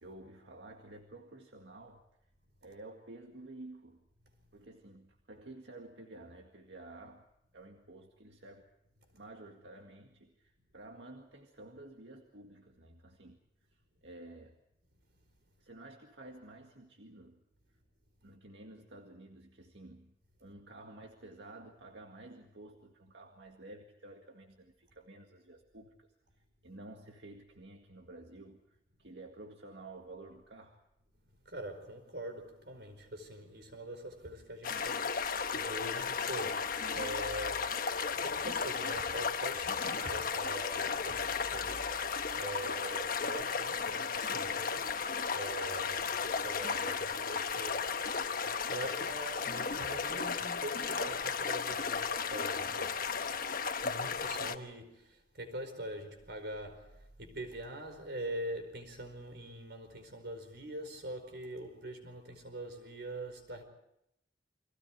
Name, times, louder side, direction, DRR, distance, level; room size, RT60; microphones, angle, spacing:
voice 1, 0.0-2.0 2.6-4.0 4.5-7.2 7.5-8.6 9.1-13.4 14.0-14.6 15.6-17.4 18.2-20.1 20.4-26.1 26.6-28.6 29.0-30.8, right 2 dB, 85° right, 2.0 m, -51 dB
voice 2, 31.4-48.1 48.7-53.0 53.8-63.6, right 1 dB, 70° right, 4.8 m, -44 dB
sound 1, 34.6-54.5, left 5 dB, 55° left, 1.2 m, -34 dB
29.5 x 23.0 x 4.6 m
head